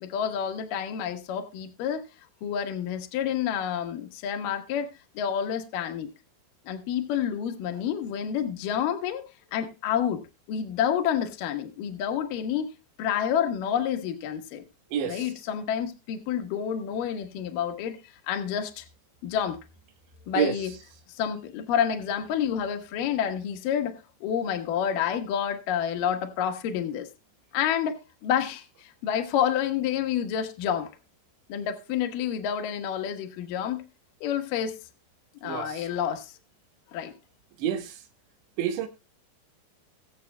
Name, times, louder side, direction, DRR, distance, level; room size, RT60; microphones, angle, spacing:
voice 1, 0.0-2.0 2.4-4.9 5.2-6.1 6.7-9.2 9.5-10.2 10.5-12.7 13.0-14.6 15.0-18.0 18.3-18.8 19.2-19.6 20.3-20.7 21.1-27.1 27.5-28.0 28.2-30.9 31.5-33.9 34.2-34.8 35.4-36.3 36.9-37.1, left 9 dB, 65° left, 2.5 m, -29 dB
voice 2, 35.4-35.8 37.6-37.9 38.6-38.9, right 8 dB, 90° right, 3.6 m, -27 dB
22.0 x 7.6 x 2.3 m
omnidirectional pair, 5.0 m